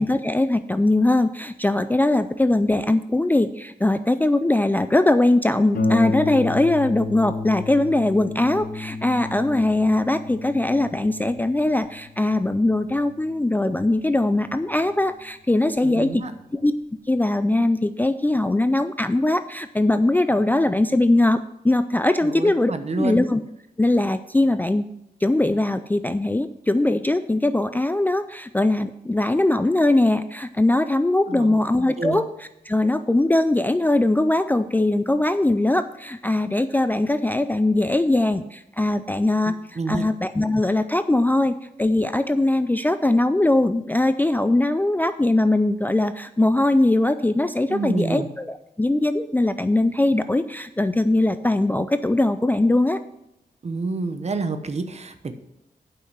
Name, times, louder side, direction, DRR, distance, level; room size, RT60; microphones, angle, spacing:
voice 1, 0.0-16.2 16.5-16.7 17.1-22.7 23.0-23.4 23.8-24.8 25.2-32.3 32.7-39.5 39.9-53.0, left 2 dB, 10° left, 11 dB, 0.3 m, -21 dB
Harp, 5.7-14.9 15.8-15.9 16.3-16.4, left 3 dB, 65° left, 1.5 m, -31 dB
voice 2, 15.8-16.3 22.2-23.2 31.3-31.6 32.0-32.2 39.4-40.1 47.7-48.3 53.6-55.3, right 3 dB, 45° right, 8 dB, 0.9 m, -28 dB
8.4 x 5.8 x 6.3 m, 0.84 s
wide cardioid pair, 100°, 16 cm